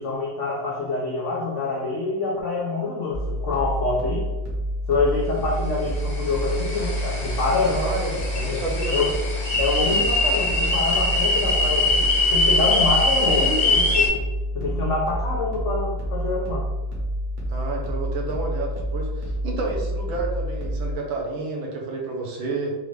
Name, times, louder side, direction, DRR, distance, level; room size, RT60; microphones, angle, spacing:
voice 1, 0.0-4.3 4.9-7.8 8.3-8.6 8.9-9.1 9.6-14.1 14.5-16.6, left 3 dB, 80° left, -4 dB, 0.6 m, -26 dB
sound 1, 3.1-20.9, equal, 45° right, 1.1 m, -28 dB
sound 2, 5.9-14.1, left 2 dB, 35° left, 0.6 m, -23 dB
voice 2, 7.7-9.1 17.5-22.8, right 3 dB, 75° right, 0 dB, 1.5 m, -30 dB
4.6 x 2.5 x 3.2 m, 1.2 s
omnidirectional pair, 2.2 m